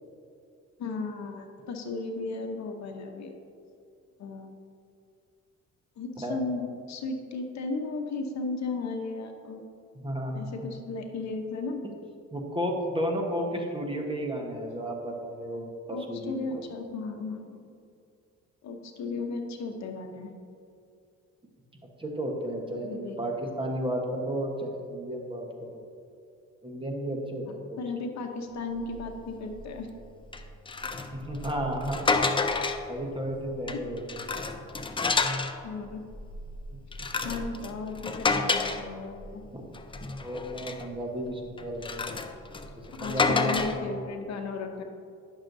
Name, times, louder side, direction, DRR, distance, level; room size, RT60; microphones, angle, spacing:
voice 1, 0.8-3.3 4.2-4.5 6.0-9.6 10.3-11.8 15.9-17.8 18.6-20.3 22.8-23.2 27.4-29.9 35.6-36.0 37.2-39.4 43.0-44.8, left 3 dB, 65° left, 4 dB, 0.8 m, -35 dB
voice 2, 9.9-10.5 12.3-16.6 22.0-25.8 26.6-28.1 30.9-32.0 32.9-34.4 39.5-39.7 40.2-42.1 42.7-44.0, equal, 15° right, 1 dB, 1.1 m, -33 dB
sound 1, 28.9-29.1 29.5-29.8 30.3-33.0 33.5-35.6 36.1-39.4 39.7-40.9 41.6-43.9, left 4 dB, 15° left, 0.5 m, -30 dB
10.5 x 6.4 x 2.6 m, 2.4 s
cardioid pair, 90°, 30 cm